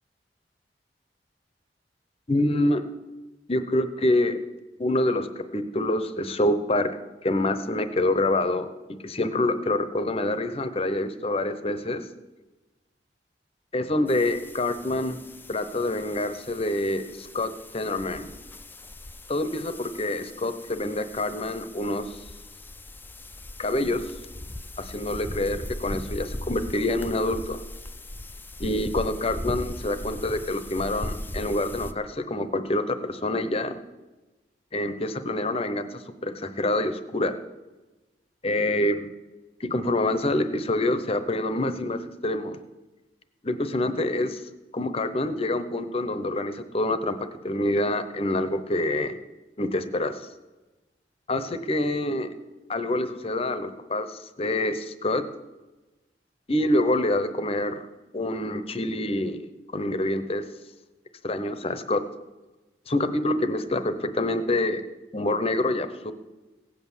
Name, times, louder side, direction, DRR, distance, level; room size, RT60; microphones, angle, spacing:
voice 1, 2.3-2.8 3.5-4.4 4.8-12.0 13.7-15.2 15.5-18.3 19.3-22.2 23.6-24.1 24.8-27.6 28.6-33.8 34.7-37.3 38.4-39.1 39.6-42.6 43.4-44.4 44.7-49.2 49.6-50.3 51.3-52.3 52.7-55.3 56.5-57.8 58.1-59.5 59.7-60.5 61.2-62.1 62.9-64.8 65.1-66.1, left 1 dB, 35° left, 11 dB, 0.9 m, -26 dB
sound 1, 14.1-31.9, left 1 dB, 10° left, 0.5 m, -39 dB
17.0 x 8.4 x 7.2 m, 1.1 s
head